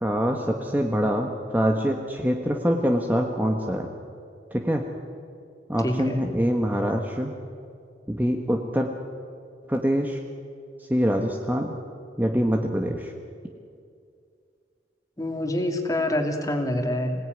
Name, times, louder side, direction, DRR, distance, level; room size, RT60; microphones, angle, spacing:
voice 1, 0.0-3.9 4.5-4.8 5.7-7.3 8.1-8.9 9.7-10.2 10.9-11.7 12.2-13.1, equal, 10° right, 2 dB, 1.4 m, -24 dB
voice 2, 5.8-6.2 15.2-17.1, left 1 dB, 20° left, 3 dB, 2.7 m, -26 dB
26.0 x 18.0 x 9.4 m, 2.3 s
head